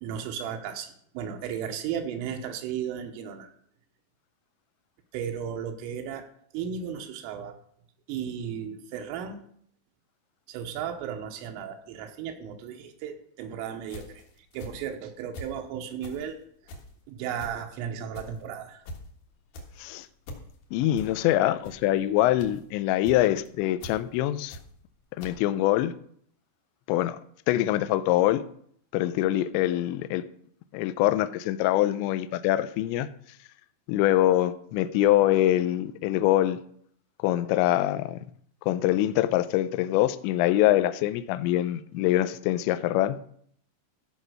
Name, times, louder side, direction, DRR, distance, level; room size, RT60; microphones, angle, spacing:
voice 1, 0.0-3.5 5.1-6.2 6.5-7.6 8.1-9.4 10.5-14.2 14.5-16.4 17.1-18.8, right 8 dB, 85° right, 3 dB, 3.5 m, -35 dB
sound 1, 13.8-15.6 16.0-24.9 25.2-25.3, left 1 dB, 60° left, 2.6 m, -44 dB
voice 2, 20.7-24.6 25.2-25.9 26.9-27.2 27.5-28.4 28.9-30.2 30.7-33.1 33.9-36.6 37.2-38.2 38.7-43.2, left 14 dB, 90° left, 11 dB, 2.5 m, -24 dB
14.0 x 5.0 x 6.3 m, 0.64 s
omnidirectional pair, 5.8 m